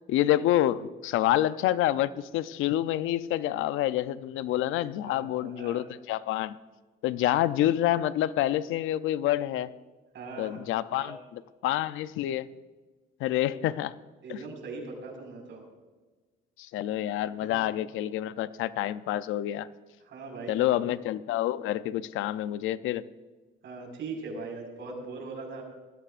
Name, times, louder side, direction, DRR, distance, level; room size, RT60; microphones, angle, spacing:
voice 1, 0.1-6.6 7.0-9.7 10.4-12.5 13.2-13.9 14.3-14.4 16.6-19.7 20.5-23.0, left 13 dB, 90° left, 15 dB, 0.5 m, -28 dB
voice 2, 5.0-5.8 10.1-11.1 14.2-15.6 20.1-20.8 23.6-25.6, right 3 dB, 70° right, 1 dB, 5.0 m, -40 dB
18.5 x 14.5 x 2.5 m, 1.3 s
cardioid pair, 90°, 20 cm